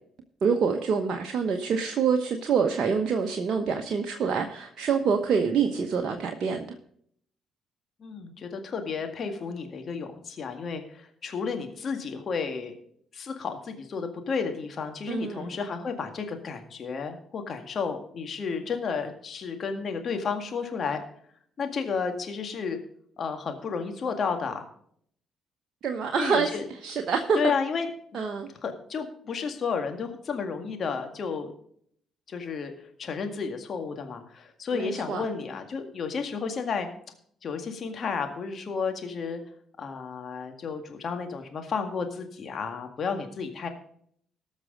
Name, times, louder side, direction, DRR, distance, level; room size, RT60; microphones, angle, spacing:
voice 1, 0.4-6.6 15.1-15.5 25.8-27.4 28.1-28.5 34.7-35.3, right 6 dB, 50° right, 4 dB, 1.0 m, -26 dB
voice 2, 8.0-12.7 13.1-21.0 21.6-22.8 23.2-24.6 26.2-26.6 27.4-27.9 28.6-31.5 32.3-32.7 33.0-36.9 37.4-39.4 39.8-43.7, left 5 dB, 50° left, 5 dB, 1.9 m, -32 dB
19.0 x 6.4 x 3.9 m, 0.64 s
hypercardioid pair, 45°, 0 cm